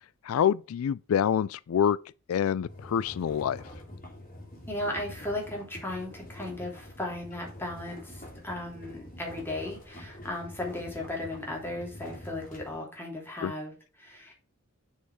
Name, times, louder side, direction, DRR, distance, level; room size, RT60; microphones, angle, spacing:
voice 1, 0.3-2.0 2.3-3.6 13.4-13.5, left 8 dB, 90° left, 0.3 m, -26 dB
sound 1, 2.7-12.8, left 1 dB, 40° left, 3.1 m, -46 dB
voice 2, 4.7-14.3, left 1 dB, 10° left, 3.0 m, -36 dB
6.4 x 5.6 x 4.7 m
head